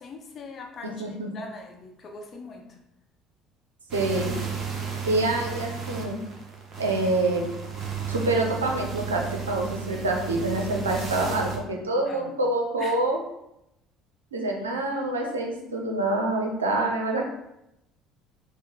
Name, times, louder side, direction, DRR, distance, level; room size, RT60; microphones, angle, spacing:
voice 1, 0.0-2.7 12.0-12.3 12.8-13.0, left 3 dB, 40° left, 2 dB, 0.8 m, -41 dB
voice 2, 1.0-1.3 3.9-4.4 5.1-6.2 6.8-7.5 8.1-13.2 14.3-17.3, right 2 dB, 80° right, 1 dB, 0.6 m, -26 dB
sound 1, 3.9-11.6, right 6 dB, 40° right, 0.9 m, -34 dB
4.6 x 2.1 x 4.4 m, 0.85 s
figure-of-eight pair, 60°, 0 cm